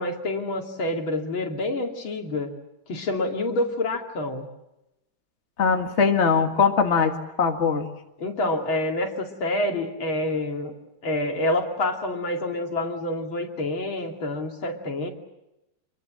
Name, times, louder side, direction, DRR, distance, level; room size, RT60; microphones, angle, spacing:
voice 1, 0.0-2.5 2.9-4.5 8.2-10.7 11.0-15.1, left 1 dB, 75° left, 2 dB, 3.5 m, -27 dB
voice 2, 5.6-7.1 7.4-7.8, left 5 dB, 35° left, 4 dB, 2.0 m, -21 dB
27.0 x 22.5 x 7.6 m, 0.93 s
omnidirectional pair, 2.2 m